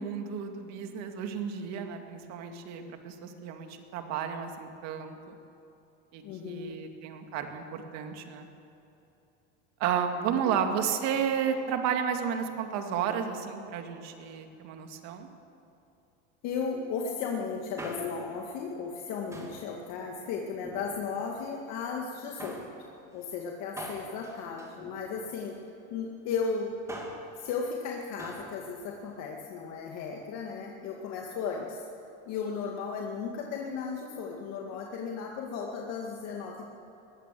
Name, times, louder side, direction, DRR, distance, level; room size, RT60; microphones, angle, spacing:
voice 1, 0.0-5.3 6.1-8.5 9.8-15.3, right 7 dB, 50° right, 5 dB, 2.3 m, -32 dB
voice 2, 6.2-6.8 10.4-10.7 16.4-22.6 23.1-25.6 25.9-26.7 27.4-31.8 32.3-36.7, left 5 dB, 50° left, 0 dB, 2.1 m, -35 dB
Male speech man speaking, 17.6-18.4 19.3-19.7 20.5-21.3 22.4-22.8 23.8-25.4 26.7-27.3 28.2-28.5 28.8-28.9, right 1 dB, 10° right, 2.6 m, -43 dB
21.0 x 16.0 x 7.7 m, 2.9 s
supercardioid pair, 145°, 34 cm